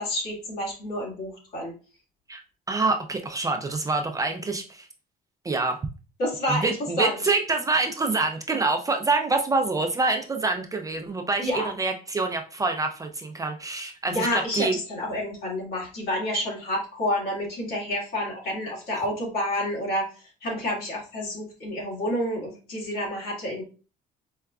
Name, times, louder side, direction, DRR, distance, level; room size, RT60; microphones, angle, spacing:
voice 1, 0.0-1.7 6.2-6.7 7.0-7.2 11.4-11.7 14.1-20.1 20.4-23.6, left 1 dB, 65° left, -2 dB, 1.7 m, -29 dB
voice 2, 2.7-4.9 5.4-5.8 6.5-14.8, right 3 dB, 20° right, 4 dB, 0.4 m, -26 dB
4.6 x 2.1 x 2.3 m, 0.35 s
cardioid pair, 110°, 17 cm